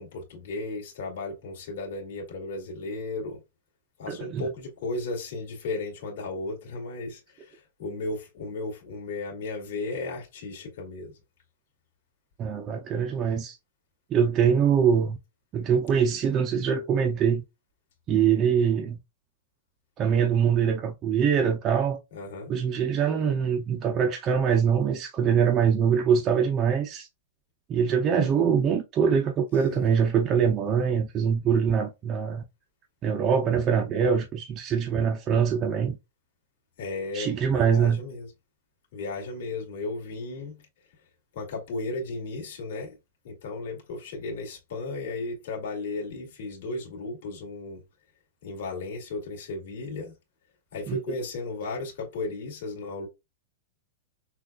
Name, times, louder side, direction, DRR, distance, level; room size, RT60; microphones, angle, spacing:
voice 1, 0.0-3.4 4.0-11.1 22.1-22.5 29.7-29.9 36.8-38.3 38.9-40.6 41.3-43.0 43.2-47.8 48.4-50.1 50.7-53.1, left 3 dB, 60° left, 2.1 m, -35 dB
voice 2, 4.1-4.5 12.4-13.6 14.1-15.2 15.5-17.4 18.1-19.0 20.0-22.0 22.5-27.1 27.7-32.4 33.0-36.0 37.1-38.0 50.9-51.0, right 7 dB, 20° right, 0.5 m, -23 dB
6.1 x 2.3 x 2.3 m
supercardioid pair, 175°, 0 cm